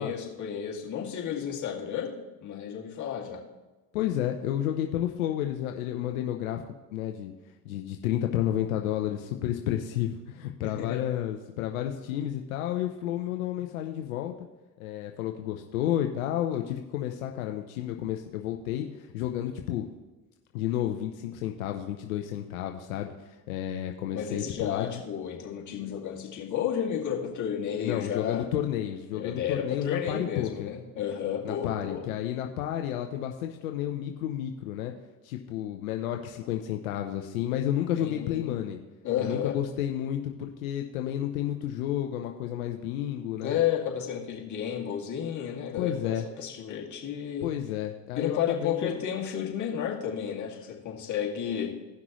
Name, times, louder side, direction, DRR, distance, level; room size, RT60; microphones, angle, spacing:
voice 1, 0.0-2.2 2.4-3.4 10.6-11.0 24.1-28.5 29.1-32.1 37.9-38.5 39.0-39.6 43.4-47.5 48.2-51.8, left 9 dB, 45° left, -2 dB, 2.4 m, -32 dB
voice 2, 3.9-6.6 6.9-7.3 7.7-14.3 14.8-19.9 20.5-23.1 23.5-25.0 27.8-30.7 31.4-34.9 35.2-38.8 39.2-43.6 45.8-46.2 47.4-49.0, left 11 dB, 90° left, 3 dB, 0.8 m, -31 dB
16.5 x 6.0 x 3.1 m, 1.2 s
hypercardioid pair, 80°, 41 cm